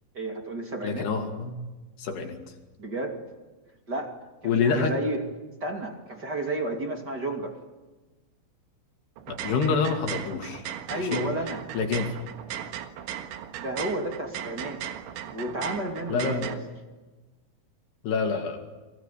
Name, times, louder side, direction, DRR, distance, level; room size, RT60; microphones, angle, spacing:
voice 1, 0.1-1.1 2.8-3.2 3.9-5.2 5.6-7.6 10.9-11.7 13.6-14.8 15.3-16.6, right 1 dB, 30° right, 3 dB, 2.3 m, -32 dB
voice 2, 0.8-1.6 2.0-2.4 4.4-4.9 9.3-10.6 10.9-11.2 11.7-12.2 16.1-16.5 18.0-18.6, left 5 dB, 65° left, 4 dB, 4.4 m, -27 dB
sound 1, 9.2-16.6, right 10 dB, 80° right, 3.8 m, -37 dB
29.5 x 22.5 x 8.5 m, 1.2 s
omnidirectional pair, 5.4 m